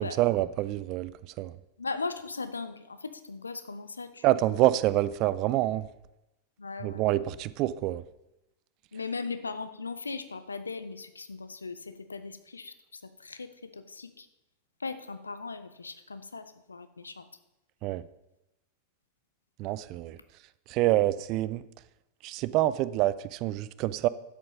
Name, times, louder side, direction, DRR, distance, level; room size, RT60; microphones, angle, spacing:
voice 1, 0.0-1.6 4.2-5.9 6.8-8.0 17.8-18.0 19.6-20.2 20.7-21.7 22.2-24.1, right 15 dB, 40° right, 17 dB, 0.4 m, -27 dB
voice 2, 1.8-4.8 6.6-7.0 8.9-14.3 14.8-17.3, left 4 dB, 75° left, 11 dB, 0.7 m, -38 dB
10.0 x 7.8 x 5.2 m, 0.92 s
figure-of-eight pair, 90°, 0 cm